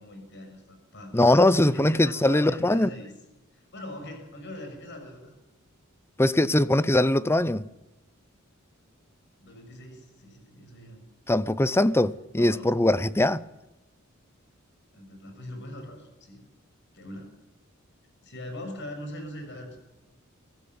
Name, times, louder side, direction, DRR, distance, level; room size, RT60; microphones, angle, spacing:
voice 1, 0.0-3.1 3.5-5.4 9.4-11.0 12.4-12.8 14.9-16.4 16.9-17.3 18.2-19.8, left 1 dB, 60° left, 6.6 m, -41 dB
voice 2, 1.1-2.9 6.2-7.6 11.3-13.4, left 1 dB, 10° left, 0.7 m, -21 dB
23.5 x 15.0 x 9.5 m
head